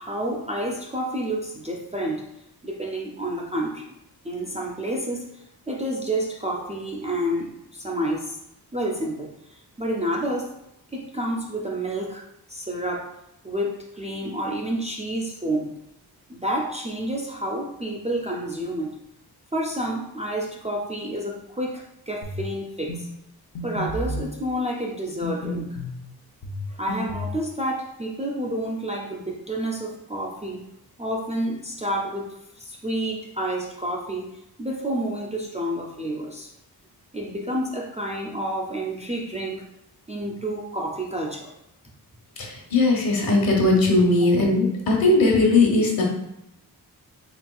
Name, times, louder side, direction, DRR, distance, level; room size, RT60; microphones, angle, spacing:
voice 1, 0.0-2.3 2.6-3.9 4.2-8.4 8.7-10.5 10.9-13.1 13.4-15.7 16.3-19.0 19.5-23.1 23.6-25.8 26.7-30.6 31.0-34.3 34.6-36.5 37.1-39.6 40.1-41.5, right 1 dB, 20° right, -1 dB, 0.4 m, -29 dB
sound 1, 22.2-22.5 22.9-23.1 23.6-24.3 25.2-26.0 26.4-27.4, left 1 dB, 90° left, 0.8 m, -31 dB
voice 2, 42.4-46.0, left 2 dB, 60° left, -1 dB, 1.2 m, -19 dB
4.3 x 3.9 x 2.3 m, 0.83 s
wide cardioid pair, 170°, 39 cm